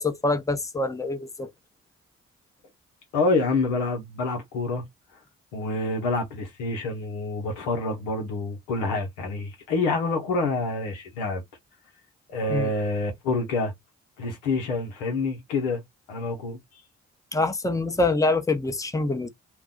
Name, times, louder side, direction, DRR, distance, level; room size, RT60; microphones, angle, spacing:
voice 1, 0.0-1.5 12.5-12.7 17.3-19.3, left 2 dB, 10° left, 0.7 m, -25 dB
voice 2, 3.1-4.9 5.5-11.4 12.3-13.7 14.2-15.8 16.1-16.6, left 3 dB, 85° left, 0.9 m, -27 dB
2.5 x 2.3 x 3.7 m
hypercardioid pair, 45°, 34 cm